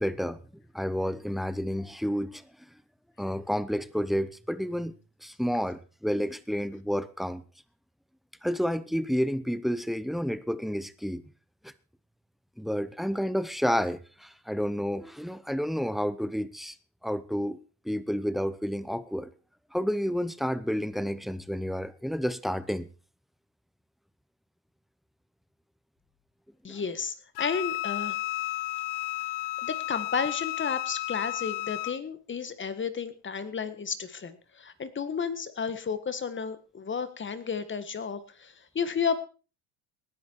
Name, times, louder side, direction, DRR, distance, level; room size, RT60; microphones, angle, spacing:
voice 1, 0.0-2.4 3.2-4.9 5.2-7.4 8.4-11.2 11.6-11.7 12.6-16.7 17.0-17.6 17.8-19.3 19.7-22.9 26.7-26.8, equal, ahead, 16 dB, 0.8 m, -30 dB
voice 2, 26.6-28.2 29.6-39.2, left 6 dB, 25° left, 12 dB, 1.7 m, -32 dB
Wind instrument woodwind instrument, 27.4-32.0, left 17 dB, 80° left, 0.8 m, -33 dB
19.0 x 10.5 x 4.7 m, 0.37 s
cardioid pair, 115°, 44 cm